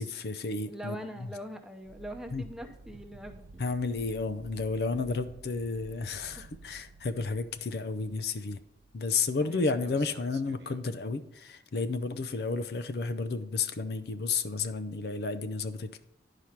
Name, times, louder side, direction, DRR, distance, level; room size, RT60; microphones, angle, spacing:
voice 1, 0.0-1.3 2.3-2.5 3.6-8.6 8.9-16.0, left 4 dB, 60° left, 10 dB, 0.5 m, -32 dB
voice 2, 0.7-3.6 4.9-5.2 9.4-9.9, equal, 5° right, 4 dB, 0.7 m, -43 dB
sound 1, 1.8-9.1 9.4-10.8, right 3 dB, 70° right, 0.4 m, -52 dB
10.5 x 4.9 x 5.8 m, 0.77 s
head